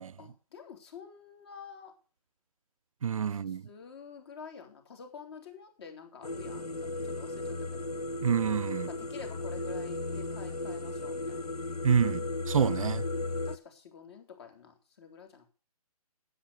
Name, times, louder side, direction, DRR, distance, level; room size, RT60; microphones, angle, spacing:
voice 1, 0.2-1.9 3.3-7.9 8.9-11.5 13.5-15.4, left 6 dB, 45° left, 3.7 m, -48 dB
voice 2, 3.0-3.6 8.2-8.9 11.8-13.0, right 7 dB, 60° right, 0.6 m, -28 dB
sound 1, 6.2-13.6, left 2 dB, 85° left, 1.1 m, -35 dB
10.0 x 8.4 x 6.9 m
figure-of-eight pair, 145°, 20 cm